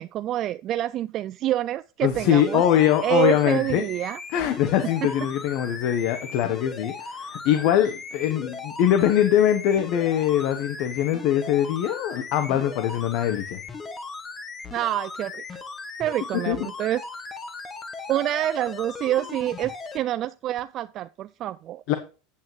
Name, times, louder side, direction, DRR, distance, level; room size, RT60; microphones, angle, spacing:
voice 1, 0.0-2.6 3.0-4.2 14.7-15.4 16.0-17.0 18.1-21.8, right 13 dB, 45° right, 0.3 m, -27 dB
voice 2, 2.0-3.8 4.3-13.6 16.5-16.6 21.9-22.0, left 10 dB, 60° left, 1.0 m, -22 dB
sound 1, 2.1-20.0 20.6-20.7, left 4 dB, 25° left, 1.2 m, -38 dB
8.6 x 8.4 x 3.1 m
supercardioid pair, 105°, 0 cm